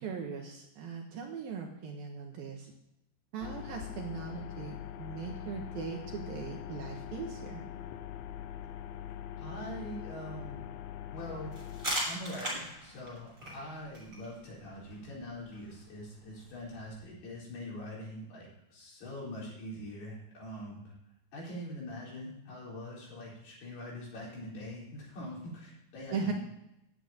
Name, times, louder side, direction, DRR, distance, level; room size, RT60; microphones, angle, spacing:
voice 1, 0.0-2.7 3.3-7.6 26.1-26.3, right 5 dB, 65° right, 1 dB, 2.7 m, -39 dB
sound 1, 3.4-11.9, left 10 dB, 90° left, 2.1 m, -43 dB
voice 2, 9.4-10.6 11.1-11.5 12.0-13.3 13.5-20.8 21.3-26.3, left 1 dB, 60° left, -5 dB, 6.3 m, -43 dB
sound 2, 11.5-17.0, right 1 dB, 10° right, 5.5 m, -41 dB
10.5 x 8.0 x 9.0 m, 0.86 s
omnidirectional pair, 5.2 m